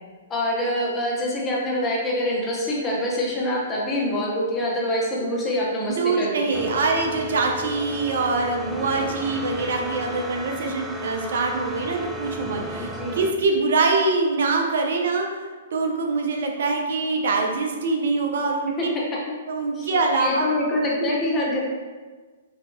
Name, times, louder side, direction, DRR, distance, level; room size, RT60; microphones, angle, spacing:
voice 1, 0.3-6.6 13.0-13.2 18.8-18.9 19.7-21.6, left 1 dB, 20° left, -4 dB, 1.0 m, -25 dB
voice 2, 5.9-18.7 19.5-20.5 21.0-21.1, right 3 dB, 60° right, 2 dB, 0.5 m, -24 dB
sound 1, 6.5-13.3, equal, 5° right, 0.4 m, -34 dB
5.4 x 2.9 x 2.2 m, 1.4 s
figure-of-eight pair, 115°, 0 cm